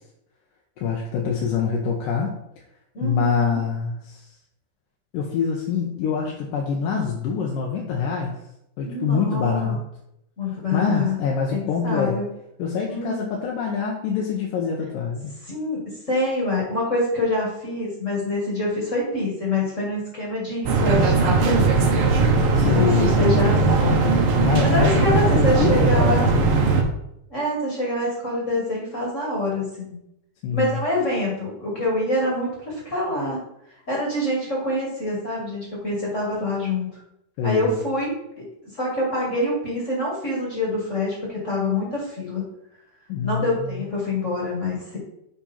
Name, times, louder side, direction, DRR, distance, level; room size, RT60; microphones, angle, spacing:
voice 1, 0.8-2.3 3.0-4.3 5.1-8.4 8.8-9.8 10.5-12.2 12.6-15.3 22.5-23.5 24.4-26.4 30.4-30.8 37.4-37.8 43.1-43.8, left 6 dB, 80° left, -1 dB, 2.5 m, -25 dB
voice 2, 2.9-3.6 8.8-9.8 10.4-11.2 11.5-12.3 12.9-13.2 15.4-15.8 16.1-21.7 22.7-24.0 24.6-26.3 27.3-29.9 30.5-33.4 33.9-36.9 37.4-38.4 38.8-42.4 43.2-45.0, left 1 dB, 30° left, -3 dB, 1.6 m, -26 dB
sound 1, 20.6-26.8, right 3 dB, 80° right, 1.2 m, -19 dB
7.3 x 5.2 x 4.4 m, 0.80 s
omnidirectional pair, 3.9 m